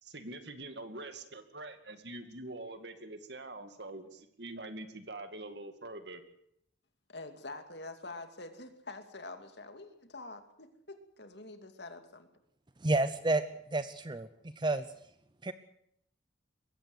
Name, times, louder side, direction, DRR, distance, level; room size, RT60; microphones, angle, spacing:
voice 1, 0.0-6.2, right 2 dB, 60° right, 9 dB, 2.4 m, -44 dB
voice 2, 7.1-12.3, left 2 dB, 60° left, 7 dB, 2.6 m, -46 dB
voice 3, 12.8-13.4 13.7-14.8 15.4-15.5, right 2 dB, 25° right, 12 dB, 0.7 m, -30 dB
22.0 x 16.5 x 8.0 m, 0.71 s
head